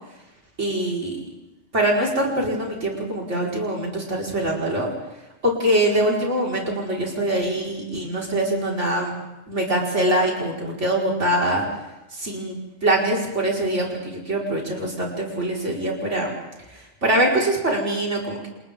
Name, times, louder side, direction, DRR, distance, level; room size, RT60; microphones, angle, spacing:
voice 1, 0.6-1.2 1.7-4.9 5.4-9.1 9.5-11.6 12.1-12.6 12.8-16.3 17.0-18.5, right 1 dB, 70° right, -3 dB, 5.2 m, -23 dB
30.0 x 29.0 x 3.8 m, 0.97 s
omnidirectional pair, 1.3 m